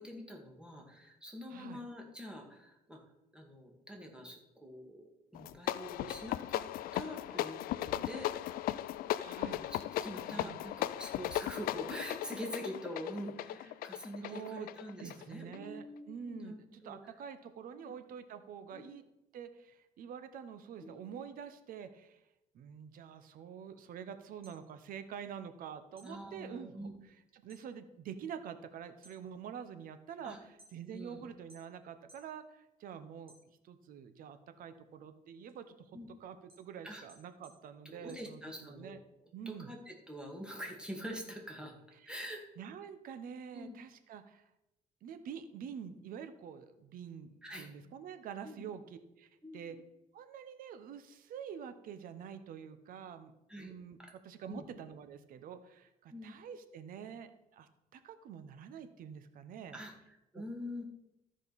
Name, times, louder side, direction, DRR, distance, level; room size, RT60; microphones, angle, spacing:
voice 1, 0.0-3.0 3.3-6.6 6.9-8.5 9.7-17.0 17.8-17.9 18.7-19.0 20.8-21.2 26.0-26.9 30.2-30.4 30.9-31.3 35.9-36.1 36.8-37.0 37.8-39.0 39.5-41.8 42.1-42.4 43.5-43.8 47.4-47.7 48.4-48.6 49.4-49.8 53.5-53.7 54.0-54.1 54.5-54.7 56.1-56.3 59.7-60.8, equal, 5° right, 1 dB, 2.1 m, -45 dB
voice 2, 1.5-1.8 9.2-9.7 10.3-10.6 14.2-14.7 15.0-19.0 19.3-22.2 22.5-33.4 33.6-35.9 36.2-39.0 39.3-39.7 42.0-42.1 42.6-44.4 45.0-49.8 50.1-54.0 54.2-59.8 60.3-60.4, right 8 dB, 70° right, 10 dB, 0.9 m, -47 dB
sound 1, 5.3-15.7, left 14 dB, 75° left, 0.4 m, -37 dB
sound 2, 24.4-25.6 25.9-27.7 28.0-28.5 28.9-31.1 31.5-32.3 32.7-33.9 34.4-38.9, right 1 dB, 40° right, 2.6 m, -64 dB
14.0 x 5.2 x 4.2 m, 0.90 s
cardioid pair, 90°, 15 cm